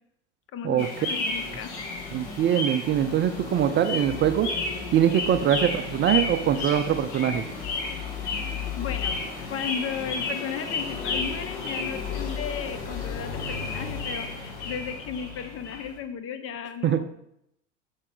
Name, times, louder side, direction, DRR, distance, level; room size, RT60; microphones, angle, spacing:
voice 1, 0.5-1.7 8.8-9.2 9.5-17.2, left 7 dB, 40° left, 9 dB, 1.0 m, -35 dB
sound 1, 0.8-16.0, left 4 dB, 55° left, 2.3 m, -32 dB
voice 2, 2.1-4.5 4.9-7.4 16.8-17.0, right 10 dB, 30° right, 9 dB, 0.5 m, -23 dB
7.0 x 6.2 x 3.9 m, 0.77 s
hypercardioid pair, 90°, 36 cm